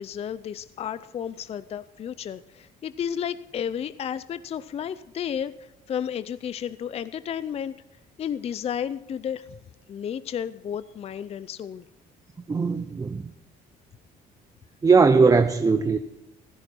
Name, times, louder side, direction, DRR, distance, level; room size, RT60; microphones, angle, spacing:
voice 1, 0.0-7.8 8.2-9.6 9.9-11.9, left 8 dB, 35° left, 0.5 m, -32 dB
voice 2, 12.5-13.3 14.8-16.0, right 4 dB, 20° right, 0.7 m, -19 dB
15.5 x 14.0 x 4.4 m
cardioid pair, 110°, 17 cm